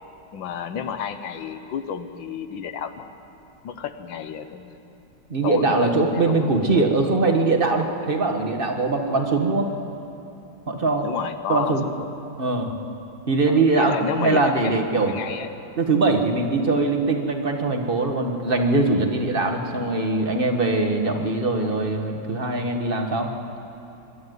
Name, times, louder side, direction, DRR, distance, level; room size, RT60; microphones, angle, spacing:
voice 1, 0.3-3.0 3.6-4.8 5.4-6.3 9.1-9.2 11.0-12.1 13.5-14.7 15.1-15.5 19.8-20.0 21.1-21.4 21.6-21.8, left 8 dB, 85° left, 9 dB, 1.7 m, -31 dB
voice 2, 5.3-9.7 10.7-11.1 11.5-11.8 12.4-12.7 13.3-15.1 15.8-23.3, right 3 dB, 30° right, 3 dB, 1.5 m, -22 dB
22.5 x 12.0 x 9.4 m, 2.9 s
omnidirectional pair, 2.0 m